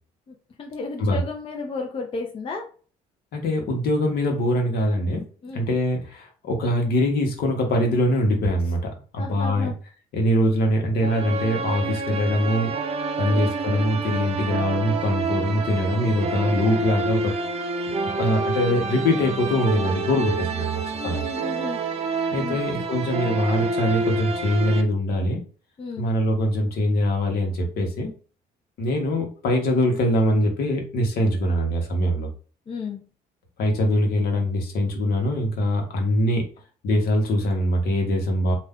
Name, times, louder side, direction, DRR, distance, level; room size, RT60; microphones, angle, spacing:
voice 1, 0.3-2.6 5.4-5.7 9.2-9.7 13.3-13.5 20.9-21.8 22.3-22.6 25.8-26.1 32.7-33.0, left 3 dB, 30° left, 0 dB, 0.6 m, -33 dB
voice 2, 3.3-5.2 5.5-9.7 10.1-12.7 13.2-17.3 18.2-21.2 22.3-25.4 26.0-28.1 28.8-32.3 33.6-36.5 36.8-38.5, left 1 dB, 65° left, 3 dB, 0.9 m, -23 dB
sound 1, 11.0-24.8, right 3 dB, 35° right, 0.4 m, -28 dB
2.5 x 2.2 x 3.5 m, 0.39 s
cardioid pair, 110°, 17 cm